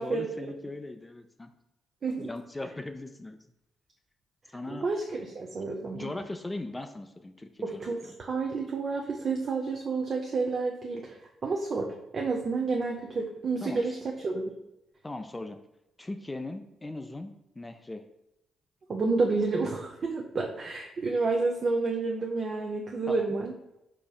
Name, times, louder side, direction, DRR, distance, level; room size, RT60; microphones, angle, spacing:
voice 1, 0.0-1.5 2.2-3.4 4.5-4.9 5.5-5.6 5.9-8.1 13.6-14.0 15.0-15.6 16.0-18.0 23.1-23.3, left 2 dB, 20° left, 7 dB, 0.3 m, -39 dB
voice 2, 4.7-6.1 7.6-14.5 18.9-23.5, right 3 dB, 50° right, 0 dB, 0.4 m, -30 dB
4.8 x 2.6 x 2.3 m, 0.88 s
hypercardioid pair, 45°, 0 cm